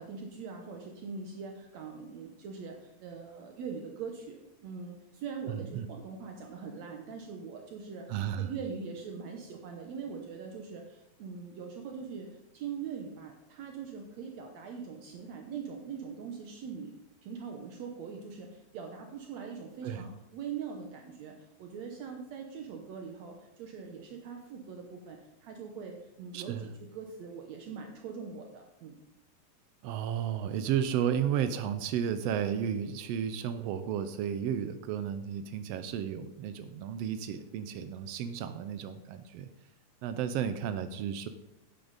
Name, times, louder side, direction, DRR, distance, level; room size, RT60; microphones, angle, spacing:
voice 1, 0.0-8.1 8.4-12.3 12.5-16.9 17.2-29.0, right 6 dB, 70° right, 3 dB, 2.0 m, -42 dB
voice 2, 5.5-5.9 8.1-8.5 19.8-20.0 26.3-26.7 29.8-39.5 40.0-41.3, right 9 dB, 85° right, 10 dB, 1.4 m, -33 dB
10.5 x 9.4 x 4.0 m, 0.90 s
omnidirectional pair, 3.5 m